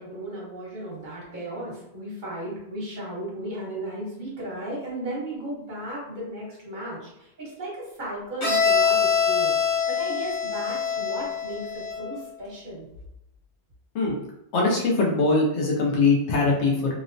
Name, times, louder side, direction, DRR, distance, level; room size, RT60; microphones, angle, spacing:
voice 1, 0.0-12.9, right 1 dB, 45° right, -6 dB, 1.1 m, -35 dB
Bowed string instrument, 8.4-12.1, left 6 dB, 70° left, 1.2 m, -24 dB
voice 2, 14.5-16.9, left 3 dB, 90° left, -3 dB, 0.9 m, -22 dB
2.9 x 2.0 x 2.5 m, 0.85 s
omnidirectional pair, 1.1 m